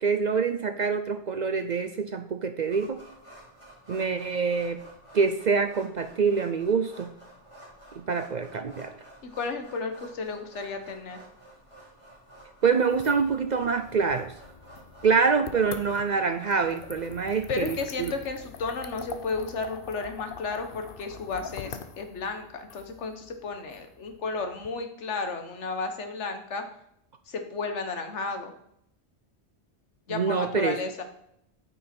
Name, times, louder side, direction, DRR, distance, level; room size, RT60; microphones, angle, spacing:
voice 1, 0.0-3.0 3.9-4.8 5.1-7.1 8.1-8.9 12.6-14.3 15.0-17.7 30.1-30.8, right 5 dB, 50° right, 8 dB, 0.5 m, -25 dB
sound 1, 2.7-17.1, right 1 dB, 25° left, 3.0 m, -51 dB
voice 2, 9.2-11.2 17.5-26.6 27.2-28.5 30.1-31.0, left 4 dB, 85° left, 6 dB, 1.5 m, -33 dB
sound 2, 12.8-24.7, left 6 dB, 55° left, 0.9 m, -44 dB
9.2 x 5.5 x 4.4 m, 0.75 s
omnidirectional pair, 1.2 m